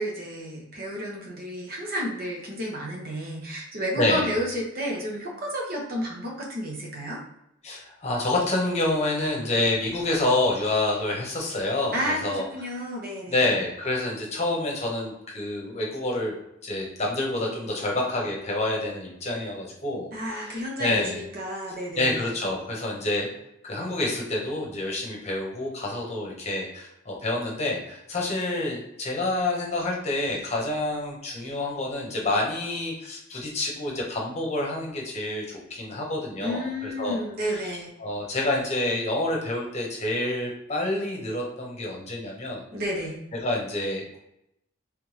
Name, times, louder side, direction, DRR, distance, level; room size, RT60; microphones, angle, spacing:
voice 1, 0.0-7.2 11.9-13.5 20.1-22.2 36.4-37.9 42.7-43.2, equal, 50° right, -2 dB, 1.1 m, -31 dB
voice 2, 4.0-4.3 7.6-12.4 13.3-16.3 16.6-21.2 21.9-23.3 23.6-35.4 35.7-37.2 37.5-37.6 38.0-42.6 43.4-44.2, left 2 dB, 35° left, -2 dB, 1.0 m, -28 dB
3.4 x 3.3 x 3.3 m, 0.82 s
head